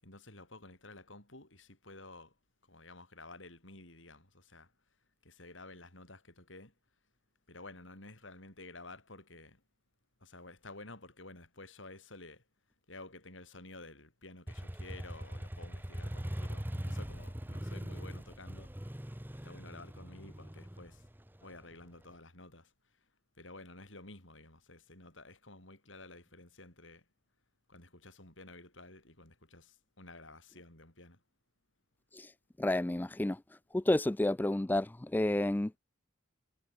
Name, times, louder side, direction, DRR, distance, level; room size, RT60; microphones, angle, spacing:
voice 1, 0.0-2.3 2.7-4.7 5.2-6.7 7.5-9.6 10.2-12.4 12.9-18.7 19.4-21.0 21.4-22.7 23.4-27.0 27.7-31.2, left 2 dB, 75° left, 7.7 m, -52 dB
Motorcycle, 14.5-22.1, equal, 10° right, 1.1 m, -41 dB
voice 2, 32.6-33.4 33.7-35.8, left 1 dB, 10° left, 0.4 m, -30 dB
head